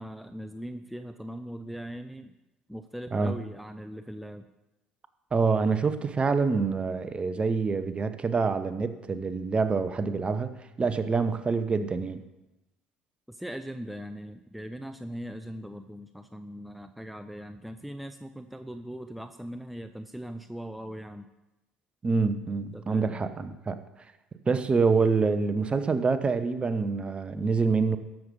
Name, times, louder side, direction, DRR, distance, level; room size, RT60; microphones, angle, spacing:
voice 1, 0.0-2.4 2.7-4.5 13.3-21.3 22.7-23.2, equal, ahead, 9 dB, 0.6 m, -40 dB
voice 2, 5.3-12.2 22.0-23.8 24.5-28.0, right 4 dB, 30° right, 11 dB, 1.0 m, -26 dB
13.5 x 6.8 x 5.4 m, 0.99 s
hypercardioid pair, 55°, 4 cm